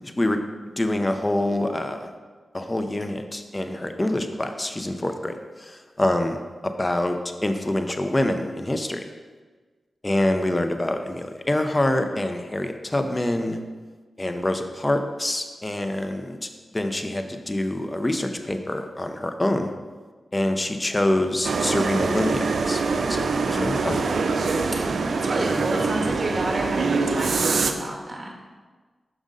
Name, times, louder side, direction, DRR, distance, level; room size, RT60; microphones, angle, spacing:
voice 1, 0.8-2.1 2.5-6.4 6.6-9.0 10.0-13.6 14.2-19.7 20.3-22.8 23.1-24.0, left 1 dB, 25° left, 6 dB, 0.6 m, -26 dB
sound 1, 21.4-27.7, right 4 dB, 75° right, 0.4 m, -24 dB
voice 2, 25.0-28.3, right 1 dB, 35° right, 0 dB, 1.4 m, -30 dB
6.2 x 5.2 x 3.8 m, 1.4 s
cardioid pair, 60°, 0 cm